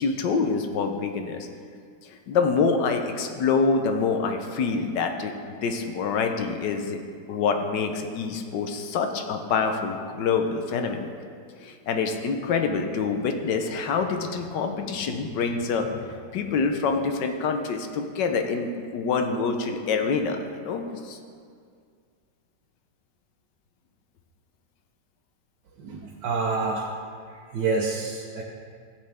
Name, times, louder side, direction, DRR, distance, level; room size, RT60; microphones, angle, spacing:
voice 1, 0.0-1.5 2.0-7.0 7.3-11.1 11.6-21.2, left 5 dB, 90° left, 5 dB, 1.5 m, -26 dB
voice 2, 25.8-26.9 27.5-28.4, right 4 dB, 85° right, -3 dB, 1.5 m, -27 dB
15.0 x 7.8 x 3.5 m, 2.2 s
omnidirectional pair, 1.8 m